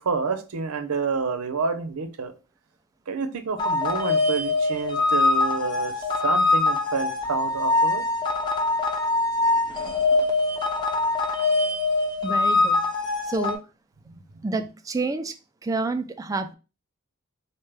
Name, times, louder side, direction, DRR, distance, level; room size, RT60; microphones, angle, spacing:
voice 1, 0.0-2.3 3.1-5.9 6.2-8.0 14.1-14.2, right 5 dB, 90° right, 0.6 m, -28 dB
sound 1, 3.6-13.5, left 3 dB, 20° left, 0.6 m, -23 dB
voice 2, 12.2-12.8 13.2-13.6 14.4-15.3 15.6-16.5, right 3 dB, 15° right, 0.3 m, -28 dB
4.3 x 2.2 x 3.3 m
head